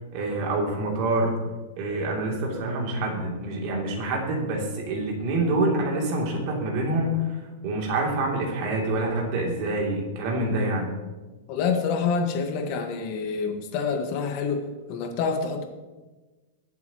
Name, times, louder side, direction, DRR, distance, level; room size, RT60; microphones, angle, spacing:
voice 1, 0.1-1.4 1.8-10.9, right 2 dB, 45° right, -1 dB, 3.0 m, -26 dB
voice 2, 11.5-15.6, left 5 dB, 40° left, 4 dB, 1.6 m, -27 dB
22.5 x 8.2 x 3.1 m, 1.2 s
supercardioid pair, 160°, 0 cm